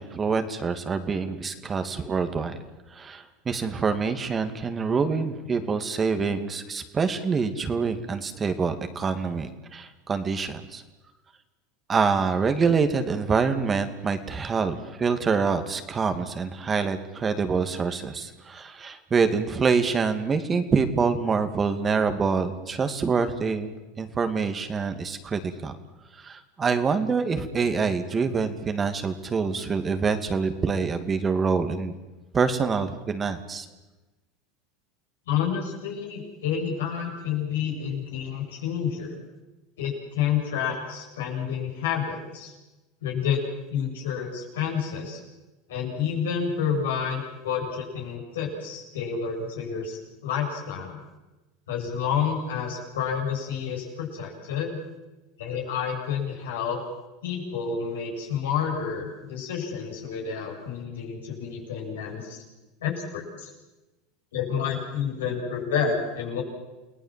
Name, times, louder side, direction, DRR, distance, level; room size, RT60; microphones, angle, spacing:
voice 1, 0.0-2.6 2.9-10.8 11.9-23.7 24.0-25.8 26.1-31.9 32.3-33.7, right 5 dB, 25° right, 8 dB, 2.4 m, -26 dB
voice 2, 35.3-39.2 39.8-42.5 43.0-43.4 43.7-45.2 45.7-51.0 51.7-54.8 55.4-56.8 57.2-62.4 62.8-63.5 64.3-66.4, left 7 dB, 85° left, 0 dB, 7.7 m, -29 dB
29.5 x 18.0 x 7.7 m, 1.1 s
hypercardioid pair, 100°, 0 cm